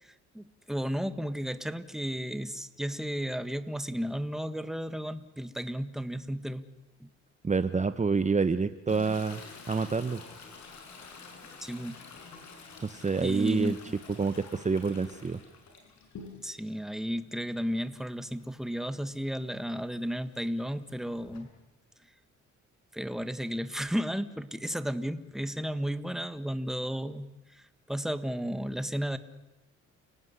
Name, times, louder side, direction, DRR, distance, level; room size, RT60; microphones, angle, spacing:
voice 1, 0.0-6.6 7.0-7.1 11.6-12.0 13.2-13.9 16.4-21.5 22.9-29.2, equal, ahead, 11 dB, 1.7 m, -33 dB
voice 2, 7.4-9.4 9.7-10.2 12.8-13.8 14.2-15.4, right 4 dB, 25° right, 11 dB, 1.1 m, -27 dB
Toilet flush, 8.9-16.7 17.1-21.4, left 4 dB, 65° left, 7.2 m, -49 dB
30.0 x 18.5 x 9.8 m, 1.0 s
cardioid pair, 90°, 30 cm